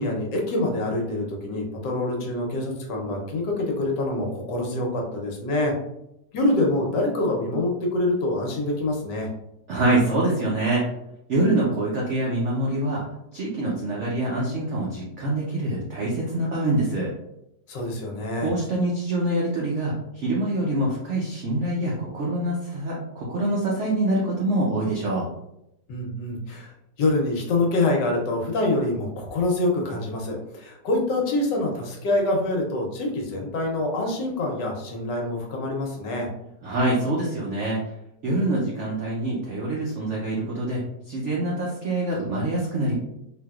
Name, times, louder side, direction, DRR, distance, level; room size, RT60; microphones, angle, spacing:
voice 1, 0.0-5.7 6.3-9.3 17.7-18.5 25.9-26.7 27.0-36.3, left 2 dB, 75° left, 0 dB, 1.3 m, -25 dB
voice 2, 9.7-10.9 11.3-13.0 13.3-17.1 18.4-25.3 36.6-37.8 38.2-42.9, right 1 dB, 75° right, -4 dB, 0.6 m, -25 dB
3.2 x 2.8 x 2.3 m, 0.83 s
omnidirectional pair, 2.0 m